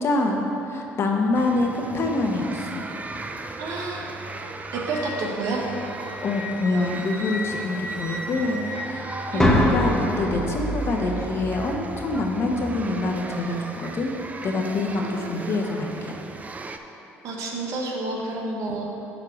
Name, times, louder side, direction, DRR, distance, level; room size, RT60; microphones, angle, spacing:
voice 1, 0.0-2.9 6.1-14.1 14.4-16.2, left 2 dB, 45° left, 2 dB, 1.1 m, -26 dB
sound 1, 1.3-16.8, right 3 dB, 25° right, 0.5 m, -37 dB
voice 2, 3.6-4.1 4.7-5.6 9.3-9.8 15.0-15.3 17.2-18.9, right 2 dB, 70° right, -1 dB, 1.3 m, -29 dB
Wind instrument woodwind instrument, 4.9-9.5, left 1 dB, 85° left, 1.8 m, -36 dB
sound 2, 9.4-13.4, left 1 dB, 10° left, 1.2 m, -26 dB
7.0 x 4.7 x 6.3 m, 3.0 s
supercardioid pair, 75°, 6 cm